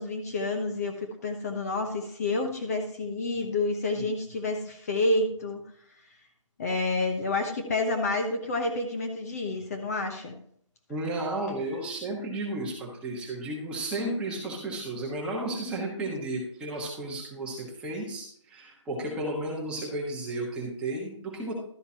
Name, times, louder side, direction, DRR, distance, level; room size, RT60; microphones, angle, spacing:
voice 1, 0.0-5.6 6.6-10.4, left 2 dB, 30° left, 3 dB, 1.0 m, -29 dB
voice 2, 10.9-21.5, right 1 dB, 5° right, -3 dB, 1.4 m, -33 dB
12.5 x 7.8 x 2.9 m, 0.63 s
hypercardioid pair, 165°, 16 cm